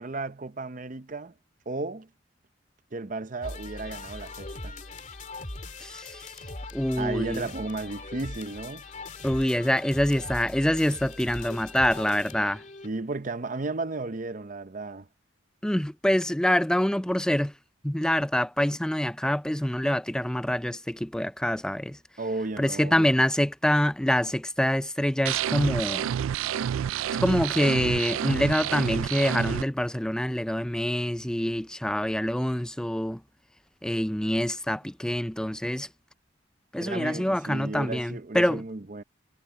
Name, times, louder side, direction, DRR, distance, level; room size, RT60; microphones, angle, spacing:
voice 1, 0.0-1.3 1.7-2.1 2.9-4.8 7.0-8.8 12.8-15.1 22.2-23.1 36.8-39.0, right 3 dB, 40° right, 0.7 m, -34 dB
sound 1, 3.4-12.9, left 2 dB, 40° left, 2.9 m, -40 dB
voice 2, 5.8-6.3 6.7-7.4 9.2-12.6 15.6-17.5 17.8-22.0 22.6-26.1 27.2-33.2 33.8-35.9 36.7-38.6, equal, 5° left, 0.4 m, -26 dB
sound 2, 25.3-29.6, right 9 dB, 85° right, 0.3 m, -29 dB
head